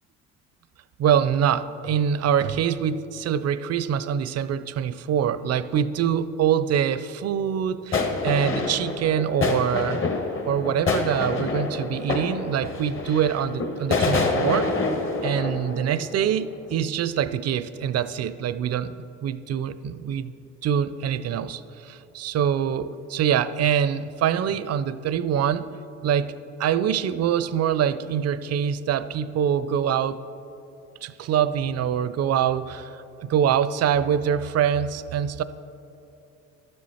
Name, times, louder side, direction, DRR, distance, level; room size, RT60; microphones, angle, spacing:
voice 1, 1.0-10.0 10.5-14.7 15.2-20.3 20.6-25.7 26.0-26.3 26.6-30.2 31.0-35.4, right 8 dB, 50° right, 14 dB, 0.5 m, -24 dB
sound 1, 7.9-16.4 16.7-16.8, left 3 dB, 40° left, 1.1 m, -27 dB
12.0 x 7.7 x 4.2 m, 2.8 s
supercardioid pair, 75°, 33 cm